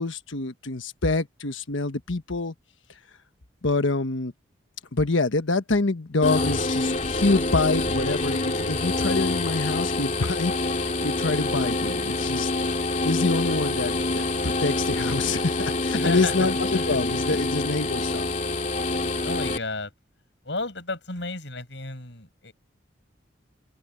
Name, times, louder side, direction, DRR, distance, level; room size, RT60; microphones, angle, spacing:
voice 1, 0.0-2.5 3.6-4.3 4.9-12.5 13.0-18.3, left 3 dB, 85° left, 1.3 m, -26 dB
sound 1, 6.2-19.6, left 2 dB, 40° left, 2.3 m, -26 dB
voice 2, 15.9-17.0 17.3-17.4 19.2-19.9 20.5-22.5, left 2 dB, 70° left, 5.9 m, -33 dB
open air
head